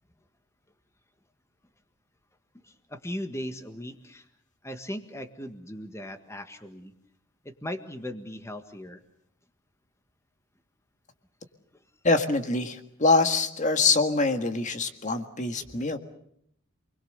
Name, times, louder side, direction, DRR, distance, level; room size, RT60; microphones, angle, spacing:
voice 1, 2.6-4.3 4.6-6.9 7.4-9.0 15.6-15.9, equal, 15° left, 7 dB, 1.7 m, -38 dB
voice 2, 12.0-16.0, left 3 dB, 35° left, 7 dB, 1.8 m, -24 dB
28.0 x 21.5 x 6.8 m, 0.71 s
head